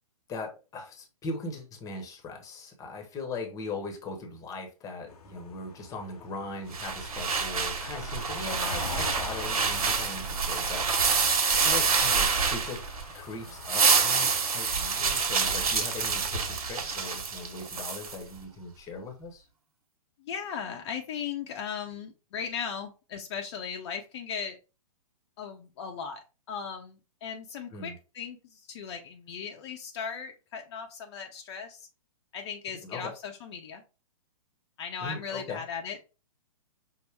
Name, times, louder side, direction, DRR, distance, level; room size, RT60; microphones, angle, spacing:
voice 1, 0.3-12.9 13.1-19.5 27.7-27.9 32.8-33.1 35.0-35.6, left 3 dB, 15° left, 1.0 m, -39 dB
sound 1, 5.1-15.1, left 3 dB, 85° left, 0.9 m, -44 dB
sound 2, 6.7-13.1 13.5-18.2, right 5 dB, 70° right, 1.1 m, -27 dB
voice 2, 20.2-24.6 25.4-26.2 26.5-31.9 32.3-33.8 34.8-36.1, left 7 dB, 45° left, 0.7 m, -37 dB
5.4 x 2.1 x 3.3 m
hypercardioid pair, 130°, 19 cm